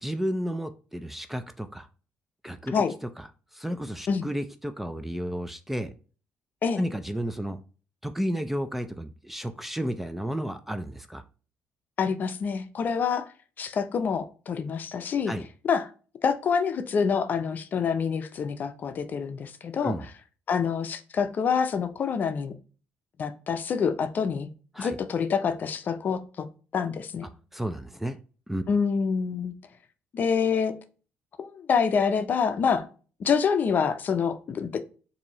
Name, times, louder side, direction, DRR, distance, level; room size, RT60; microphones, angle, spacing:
voice 1, 0.0-1.9 2.4-2.7 3.2-3.3 3.5-5.9 6.8-7.6 8.0-11.2 15.3-15.4 19.8-20.0 24.7-25.0 27.5-28.2 28.5-28.6, equal, 5° right, 9 dB, 0.3 m, -32 dB
voice 2, 12.0-13.3 13.6-15.3 15.7-15.9 16.2-20.0 20.5-22.5 23.2-24.5 24.8-26.5 26.7-27.3 28.7-29.5 30.1-30.7 31.4-32.8 33.2-34.8, left 6 dB, 45° left, 9 dB, 0.5 m, -26 dB
4.2 x 2.7 x 2.9 m, 0.37 s
cardioid pair, 110°, 4 cm